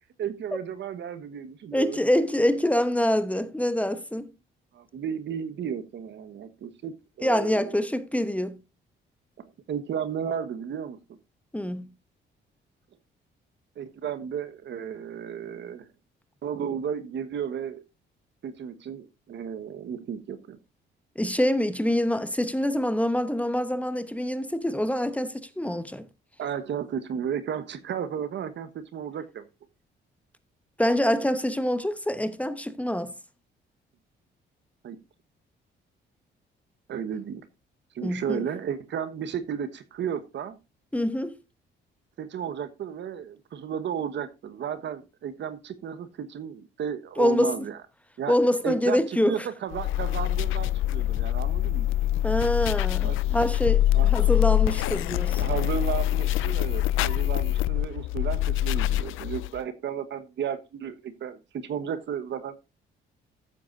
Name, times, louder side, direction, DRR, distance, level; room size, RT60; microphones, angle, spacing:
voice 1, 0.2-2.0 4.7-7.7 9.7-11.0 13.8-15.9 16.4-17.8 18.4-20.6 26.4-29.4 34.8-35.0 36.9-37.5 37.9-40.6 42.2-47.8 48.2-48.4 48.6-51.9 53.0-53.4 53.9-54.3 54.9-55.0 55.4-62.5, right 8 dB, 65° right, 1.3 m, -33 dB
voice 2, 1.7-4.3 7.2-8.6 11.5-11.9 21.2-26.1 30.8-33.1 38.0-38.4 40.9-41.4 47.2-47.7 48.3-49.5 52.2-55.5, left 1 dB, 5° left, 1.0 m, -25 dB
sound 1, 49.7-59.6, left 13 dB, 85° left, 0.5 m, -25 dB
14.5 x 7.8 x 2.6 m
cardioid pair, 90°, 20 cm